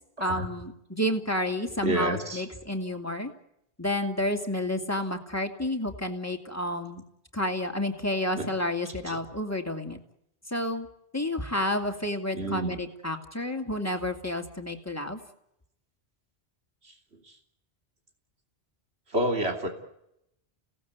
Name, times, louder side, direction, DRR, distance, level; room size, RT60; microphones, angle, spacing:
voice 1, 0.2-3.3 3.8-7.0 7.3-10.0 10.5-10.9 11.1-15.2, left 1 dB, 15° left, 4 dB, 2.6 m, -30 dB
voice 2, 1.8-2.4 8.4-8.5 9.1-9.2 12.3-12.8 16.8-16.9 19.1-19.7, right 1 dB, 70° right, 3 dB, 3.6 m, -29 dB
30.0 x 18.0 x 8.3 m, 0.82 s
omnidirectional pair, 1.1 m